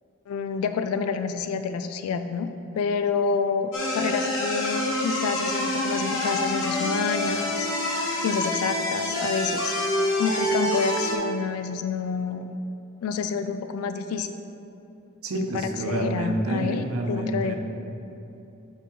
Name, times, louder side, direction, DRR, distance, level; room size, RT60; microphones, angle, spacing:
voice 1, 0.3-2.5 2.8-7.7 8.2-9.7 10.2-12.5 13.0-14.3 15.3-17.5, left 5 dB, 80° left, 9 dB, 0.3 m, -28 dB
sound 1, 3.7-11.2, left 1 dB, 65° left, 1.1 m, -27 dB
voice 2, 15.2-17.6, right 1 dB, 80° right, 2 dB, 0.8 m, -28 dB
6.1 x 5.2 x 4.5 m, 2.9 s
head